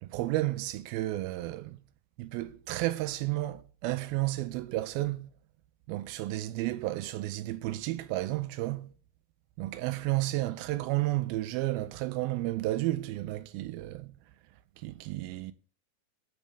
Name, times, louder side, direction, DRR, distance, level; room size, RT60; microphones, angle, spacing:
voice 1, 0.0-1.8 2.2-5.3 5.9-8.9 9.6-14.1 14.8-15.5, right 17 dB, 80° right, 2.4 m, -32 dB
14.0 x 6.2 x 3.4 m
omnidirectional pair, 4.5 m